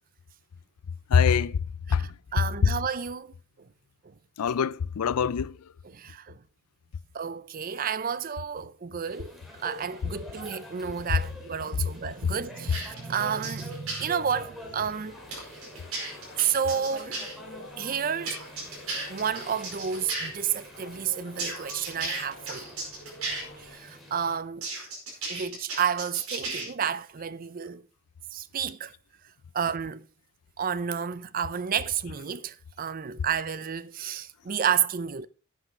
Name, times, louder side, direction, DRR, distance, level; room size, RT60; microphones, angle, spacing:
voice 1, 1.1-1.6 1.9-2.1 2.6-2.7 4.4-5.6, left 6 dB, 85° left, 0.4 m, -23 dB
voice 2, 2.0-3.3 5.9-6.4 7.1-15.2 16.4-17.2 17.8-18.4 19.1-22.8 23.6-24.7 25.3-27.8 28.3-28.9 29.5-30.1 30.6-35.3, right 7 dB, 40° right, 0.5 m, -31 dB
sound 1, 9.0-24.4, left 1 dB, ahead, 2.6 m, -47 dB
sound 2, 12.7-14.1 15.3-17.3 18.3-20.3 21.4-23.4 24.6-26.6, right 3 dB, 75° right, 4.9 m, -35 dB
sound 3, 15.1-23.8, left 1 dB, 45° left, 2.8 m, -49 dB
11.0 x 8.4 x 4.3 m
head